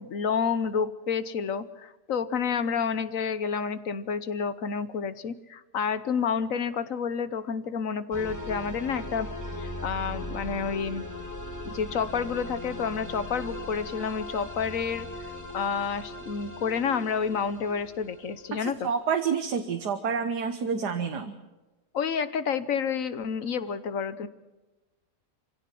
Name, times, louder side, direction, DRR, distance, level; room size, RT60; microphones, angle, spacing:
voice 1, 0.0-9.3 9.6-11.0 11.7-15.1 15.5-18.9 21.9-24.3, left 6 dB, 55° left, 14 dB, 1.3 m, -29 dB
sound 1, 8.1-18.7, left 1 dB, 10° left, 1.8 m, -39 dB
voice 2, 18.5-21.3, right 6 dB, 75° right, 7 dB, 1.7 m, -28 dB
25.0 x 16.5 x 7.6 m, 1.1 s
omnidirectional pair, 1.8 m